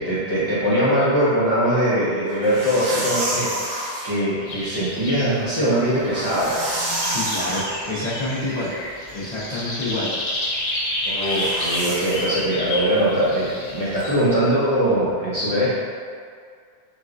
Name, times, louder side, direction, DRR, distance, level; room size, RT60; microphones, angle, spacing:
voice 1, 0.0-6.6 11.0-15.7, equal, 35° right, -11 dB, 1.1 m, -21 dB
sound 1, 2.3-4.1 5.9-7.7 11.1-12.4, right 1 dB, 65° right, 1.0 m, -28 dB
sound 2, 4.5-14.3, left 1 dB, 75° left, 1.0 m, -30 dB
voice 2, 7.1-8.7 9.1-10.1, left 2 dB, 45° left, -10 dB, 0.8 m, -28 dB
3.9 x 3.4 x 2.5 m, 2.1 s
omnidirectional pair, 1.1 m